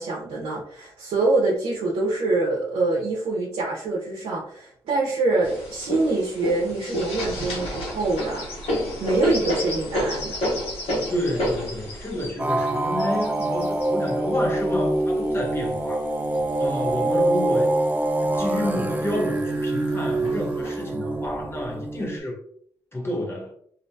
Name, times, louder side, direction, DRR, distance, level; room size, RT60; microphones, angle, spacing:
voice 1, 0.0-8.5 9.0-10.4, right 3 dB, 80° right, 0.6 m, -25 dB
sound 1, 5.4-15.7 16.3-17.3 17.7-17.8 18.1-18.8 19.5-19.6 20.2-20.7, left 1 dB, 75° left, 1.1 m, -30 dB
voice 2, 11.0-16.1 16.6-17.7 18.2-22.4 22.9-23.5, left 1 dB, 25° left, 0.8 m, -30 dB
sound 2, 12.4-22.2, right 2 dB, 15° right, 0.3 m, -25 dB
2.5 x 2.1 x 2.6 m
cardioid pair, 55°, 10 cm